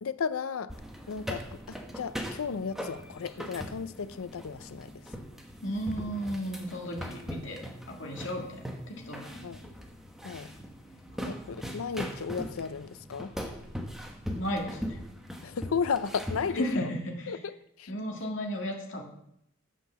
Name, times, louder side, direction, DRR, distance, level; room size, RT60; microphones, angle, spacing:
voice 1, 0.0-0.7 1.1-4.9 9.4-9.6 10.2-10.5 11.2-13.3 15.4-16.9 17.3-17.9, left 6 dB, 85° left, 15 dB, 0.5 m, -34 dB
sound 1, 0.7-16.6, equal, ahead, 1.0 m, -40 dB
voice 2, 5.6-9.4 11.1-11.4 14.3-15.0 16.5-17.4 17.9-19.0, equal, 60° left, 0 dB, 1.9 m, -35 dB
8.4 x 6.0 x 6.7 m, 0.75 s
head